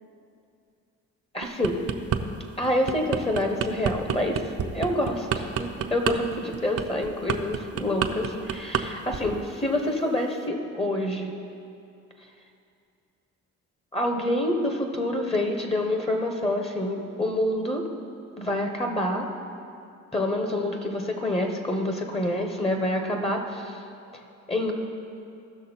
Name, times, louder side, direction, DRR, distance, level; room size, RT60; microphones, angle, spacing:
voice 1, 1.3-1.8 2.6-11.3 13.9-17.8 18.4-19.3 20.1-23.8 24.5-24.7, left 1 dB, 20° left, 3 dB, 1.1 m, -27 dB
sound 1, 1.4-2.2 2.6-8.8 9.1-9.4, right 8 dB, 50° right, 0.7 m, -28 dB
15.0 x 6.2 x 4.4 m, 2.5 s
cardioid pair, 90°, 30 cm